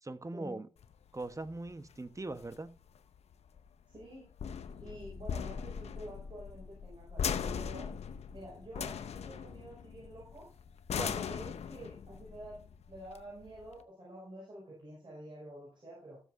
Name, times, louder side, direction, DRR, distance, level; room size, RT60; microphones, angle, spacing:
voice 1, 0.0-0.7 1.1-2.7 11.0-11.1, right 2 dB, 30° right, 12 dB, 1.1 m, -40 dB
sound 1, 0.8-13.8, left 7 dB, 80° left, 0.7 m, -40 dB
voice 2, 3.9-4.3 4.8-7.9 8.3-10.5 11.1-16.2, right 1 dB, 45° right, -5 dB, 6.0 m, -49 dB
15.0 x 7.2 x 2.6 m, 0.37 s
cardioid pair, 45°, 11 cm